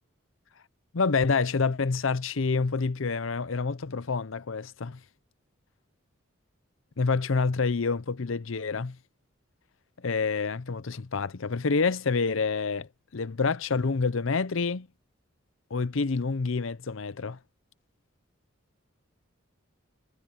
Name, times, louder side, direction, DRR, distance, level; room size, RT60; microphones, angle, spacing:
voice 1, 0.9-5.0 7.0-9.0 10.0-14.9 15.7-17.4, left 4 dB, 75° left, 0.7 m, -27 dB
head